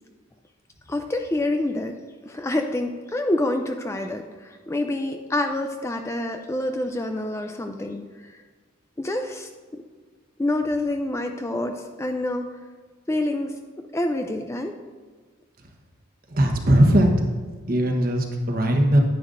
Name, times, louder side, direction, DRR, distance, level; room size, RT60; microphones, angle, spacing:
voice 1, 0.9-2.0 2.2-8.3 9.0-9.8 10.4-12.6 13.1-13.6 13.9-14.8, left 1 dB, 15° left, 5 dB, 0.4 m, -27 dB
voice 2, 16.3-17.1 17.7-19.0, right 1 dB, 45° right, 2 dB, 1.2 m, -19 dB
10.0 x 10.0 x 2.6 m, 1.4 s
head